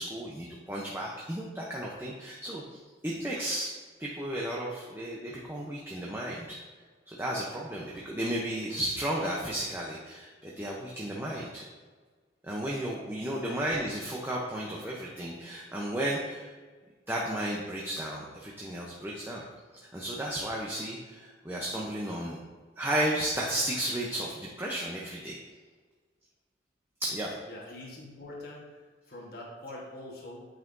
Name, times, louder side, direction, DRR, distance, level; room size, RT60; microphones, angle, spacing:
voice 1, 0.0-2.8 3.0-3.7 4.0-6.6 7.1-11.6 12.4-16.5 17.1-19.4 19.9-22.4 22.8-25.3 27.0-27.4, right 1 dB, 10° right, -4 dB, 0.7 m, -33 dB
voice 2, 27.5-28.8 29.1-30.5, left 1 dB, 55° left, -3 dB, 1.3 m, -44 dB
8.8 x 5.5 x 2.6 m, 1.4 s
head